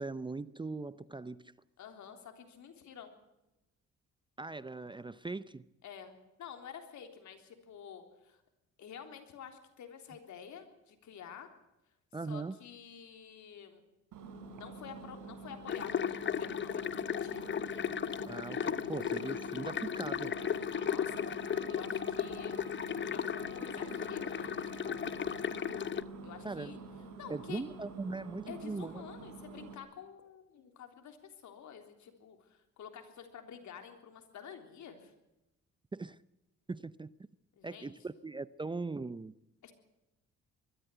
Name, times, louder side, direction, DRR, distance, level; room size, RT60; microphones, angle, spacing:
voice 1, 0.0-1.5 4.4-5.7 12.1-12.6 18.2-20.4 26.4-26.8 27.3-29.0 35.9-36.2 36.7-37.1 37.6-39.3, right 3 dB, 15° right, 17 dB, 0.6 m, -40 dB
voice 2, 1.8-3.1 5.8-8.4 8.8-11.5 12.3-13.8 14.5-17.5 20.8-21.3 21.7-22.6 23.0-25.2 26.2-26.8 27.2-27.6 28.5-35.1 37.6-37.9 39.6-39.7, left 8 dB, 70° left, 6 dB, 3.6 m, -50 dB
Engine, 14.1-29.8, right 4 dB, 75° right, 4.2 m, -48 dB
sound 1, 15.7-26.0, left 8 dB, 40° left, 0.9 m, -35 dB
Wind instrument woodwind instrument, 20.4-25.9, right 4 dB, 45° right, 3.0 m, -57 dB
22.0 x 14.0 x 9.2 m, 0.94 s
cardioid pair, 90°, 30 cm